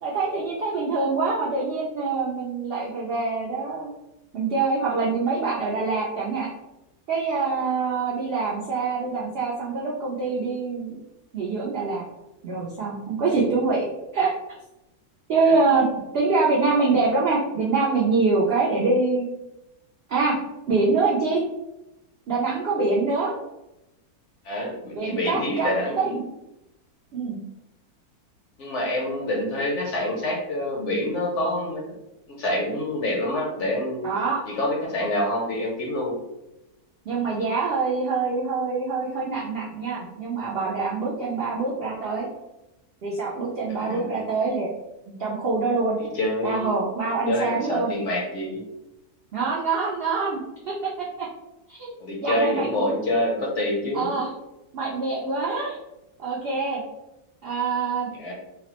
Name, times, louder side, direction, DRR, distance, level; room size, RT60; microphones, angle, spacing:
voice 1, 0.0-3.9 4.3-6.5 7.1-11.0 11.3-12.0 12.4-13.9 14.1-14.3 15.3-15.9 16.1-19.3 20.1-20.4 20.7-21.4 22.3-23.3 24.9-26.2 27.1-27.4 34.0-34.4 37.1-42.3 43.0-44.7 45.1-46.0 46.4-47.9 49.3-51.3 51.7-51.9 52.2-52.9 53.9-54.3 54.7-55.8 56.2-56.8 57.4-58.3, right 4 dB, 85° right, -4 dB, 0.5 m, -25 dB
voice 2, 24.4-26.1 28.6-31.8 32.3-34.1 34.5-36.2 43.8-44.2 46.1-46.7 47.3-48.6 52.0-54.2 58.1-58.3, left 1 dB, 65° left, -2 dB, 0.8 m, -26 dB
3.3 x 2.0 x 2.8 m, 0.93 s
omnidirectional pair, 1.7 m